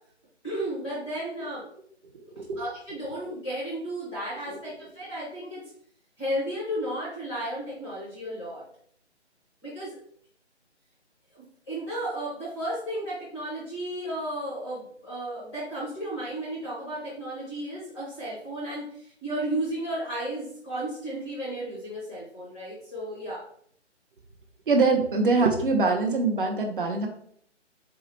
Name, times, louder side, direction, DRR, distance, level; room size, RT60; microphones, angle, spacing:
voice 1, 0.4-1.6 2.2-5.6 6.2-8.6 9.6-10.0 11.3-23.4, right 1 dB, ahead, -9 dB, 0.6 m, -33 dB
voice 2, 2.1-2.6 4.5-4.6 24.7-27.1, right 3 dB, 45° right, 2 dB, 0.7 m, -24 dB
4.1 x 2.4 x 3.0 m, 0.63 s
figure-of-eight pair, 145°, 36 cm